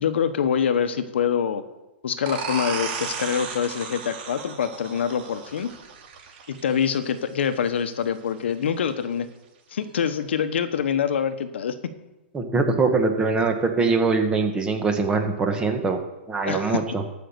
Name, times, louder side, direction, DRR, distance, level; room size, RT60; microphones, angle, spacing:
voice 1, 0.0-1.6 2.0-5.7 6.5-9.3 9.7-11.9 16.5-16.8, left 8 dB, 75° left, 10 dB, 1.1 m, -25 dB
sound 1, 2.3-7.7, right 6 dB, 50° right, 2.6 m, -34 dB
voice 2, 12.3-16.0 16.3-17.0, right 4 dB, 15° right, 5 dB, 1.6 m, -22 dB
13.5 x 5.7 x 6.8 m, 1.0 s
hypercardioid pair, 140°, 6 cm